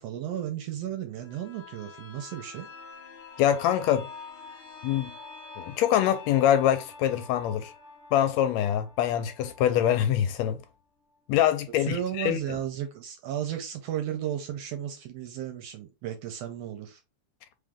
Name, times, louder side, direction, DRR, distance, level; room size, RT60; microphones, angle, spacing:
voice 1, 0.0-2.7 11.8-17.0, right 10 dB, 75° right, 1.6 m, -34 dB
sound 1, 1.2-10.8 11.1-11.2, left 4 dB, 45° left, 0.8 m, -46 dB
voice 2, 3.4-4.1 4.8-5.1 5.6-7.7 8.1-10.6 11.3-12.4, left 11 dB, 80° left, 1.7 m, -24 dB
3.8 x 3.5 x 3.6 m
omnidirectional pair, 3.3 m